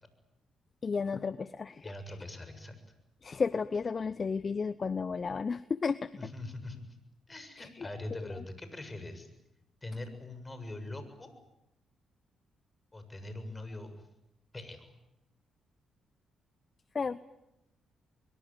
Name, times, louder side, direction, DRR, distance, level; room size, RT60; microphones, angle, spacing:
voice 1, 0.8-1.9 3.2-6.1 7.6-7.9 16.9-17.2, left 5 dB, 45° left, 16 dB, 0.9 m, -33 dB
voice 2, 1.8-2.8 6.2-6.8 7.3-9.3 9.8-11.3 12.9-13.9 14.5-14.9, left 2 dB, 25° left, 9 dB, 7.2 m, -42 dB
23.5 x 22.5 x 9.2 m, 0.86 s
supercardioid pair, 55°, 0 cm